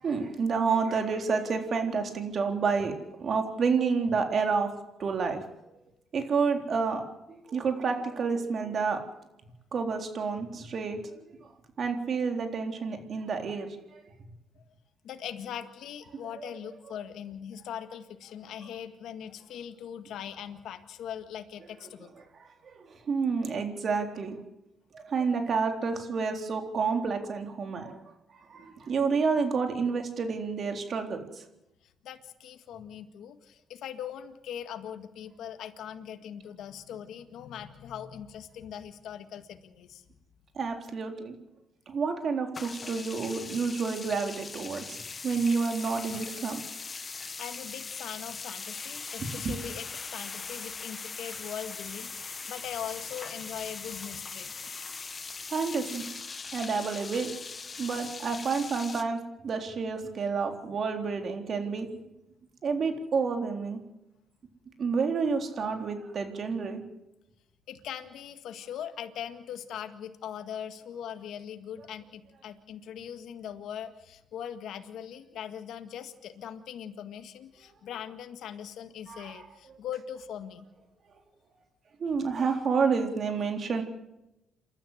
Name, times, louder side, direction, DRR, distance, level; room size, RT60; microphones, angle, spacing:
voice 1, 0.0-2.9 3.2-4.7 5.0-5.5 6.1-7.0 7.3-9.0 9.7-11.0 11.8-14.0 16.4-16.5 22.7-24.4 24.9-28.0 28.5-31.2 40.6-41.4 41.9-45.0 45.2-46.6 49.4-49.5 55.5-56.0 56.5-57.3 57.8-61.9 62.6-63.8 64.8-66.8 79.1-79.4 82.0-83.8, right 5 dB, 50° right, 4 dB, 3.8 m, -29 dB
voice 2, 15.0-22.1 32.0-40.0 47.4-49.9 50.1-54.5 67.7-80.7, left 9 dB, 80° left, 8 dB, 1.8 m, -41 dB
sound 1, 42.5-59.0, left 4 dB, 35° left, 1.6 m, -40 dB
28.5 x 13.0 x 8.1 m, 0.93 s
cardioid pair, 90°, 0 cm